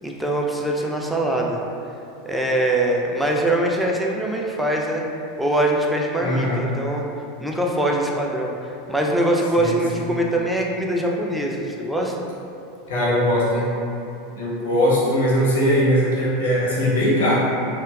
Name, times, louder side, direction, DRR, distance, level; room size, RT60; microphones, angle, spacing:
voice 1, 0.0-1.6 2.3-5.0 5.4-7.0 7.4-12.1, right 1 dB, ahead, -2 dB, 0.3 m, -23 dB
voice 2, 6.2-6.6 9.5-10.1 12.9-13.7 14.3-17.4, equal, 70° left, -5 dB, 0.6 m, -20 dB
2.7 x 2.1 x 2.3 m, 2.6 s
figure-of-eight pair, 85°, 0 cm